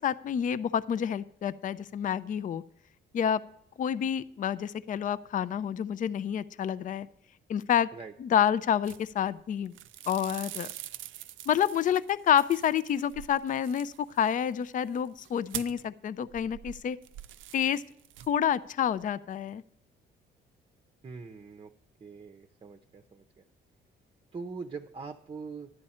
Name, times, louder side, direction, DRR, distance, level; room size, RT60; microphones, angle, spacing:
voice 1, 0.0-2.6 3.1-3.4 3.8-7.1 7.5-7.9 8.2-9.8 10.1-10.7 11.5-17.0 17.5-17.8 18.3-19.6, left 9 dB, 40° left, 17 dB, 0.4 m, -28 dB
sound 1, 8.8-9.4 9.7-15.9 16.3-18.5 18.8-19.1, right 13 dB, 75° right, 0.5 m, -45 dB
voice 2, 21.0-21.7 22.0-23.4 24.3-25.7, right 4 dB, 30° right, 6 dB, 0.7 m, -42 dB
11.0 x 8.5 x 4.3 m, 0.72 s
cardioid pair, 90°, 20 cm